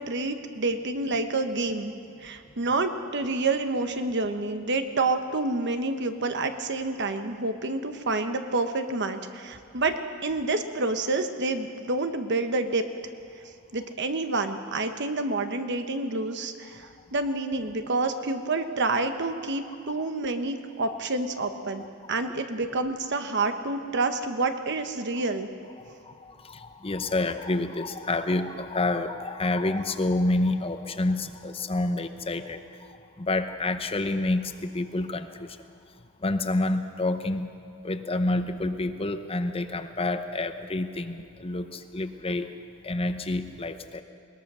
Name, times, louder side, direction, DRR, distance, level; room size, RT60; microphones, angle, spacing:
voice 1, 0.0-1.9 2.2-12.8 13.7-25.5, right 3 dB, 60° right, 8 dB, 1.2 m, -28 dB
voice 2, 25.9-32.6 33.2-35.6 36.2-37.5 37.8-42.5 42.8-44.0, left 2 dB, 30° left, 9 dB, 0.9 m, -28 dB
21.0 x 20.0 x 6.2 m, 2.5 s
head